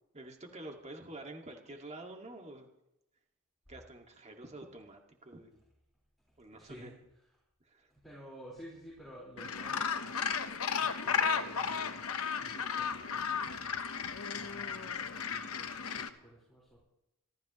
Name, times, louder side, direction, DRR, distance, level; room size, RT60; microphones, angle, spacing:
voice 1, 0.1-2.7 3.7-5.6 6.4-6.9 7.6-7.9, right 2 dB, 30° right, 2 dB, 2.2 m, -48 dB
voice 2, 6.6-6.9 7.9-10.0 10.8-11.9 12.4-13.5 14.1-16.8, equal, ahead, -5 dB, 4.7 m, -53 dB
Gull seagull, 9.4-16.1, left 6 dB, 70° left, 1.1 m, -34 dB
26.0 x 14.0 x 3.2 m, 0.87 s
head